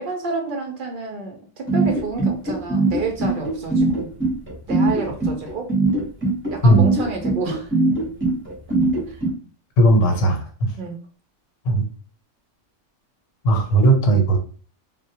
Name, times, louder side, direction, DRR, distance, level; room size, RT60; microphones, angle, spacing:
voice 1, 0.0-4.1 4.7-5.7 6.5-7.7 9.1-9.2 10.8-10.9, right 3 dB, 60° right, 2 dB, 0.5 m, -29 dB
sound 1, 1.7-9.3, right 2 dB, 15° right, 0.6 m, -20 dB
voice 2, 9.8-10.7 11.6-11.8 13.4-14.4, right 2 dB, 85° left, 4 dB, 1.1 m, -16 dB
2.2 x 2.1 x 2.7 m, 0.42 s
omnidirectional pair, 1.3 m